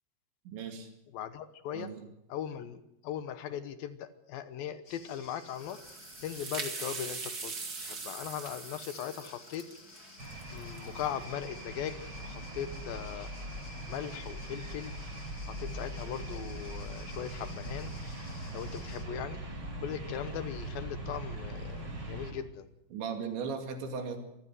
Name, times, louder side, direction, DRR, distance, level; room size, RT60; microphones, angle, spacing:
voice 1, 0.5-0.9 1.7-2.0 22.9-24.2, right 5 dB, 85° right, 5 dB, 4.7 m, -37 dB
voice 2, 1.1-1.9 2.3-5.8 6.2-7.5 7.8-9.6 10.5-13.3 13.9-14.9 15.5-17.9 18.5-19.4 19.8-22.7, left 9 dB, 70° left, 12 dB, 2.4 m, -39 dB
sound 1, 4.8-19.0, left 4 dB, 40° left, 1.4 m, -54 dB
sound 2, 5.5-11.1, right 4 dB, 40° right, 1.4 m, -41 dB
sound 3, 10.2-22.3, right 1 dB, 25° right, 4.6 m, -41 dB
24.0 x 15.0 x 7.7 m, 0.83 s
omnidirectional pair, 5.0 m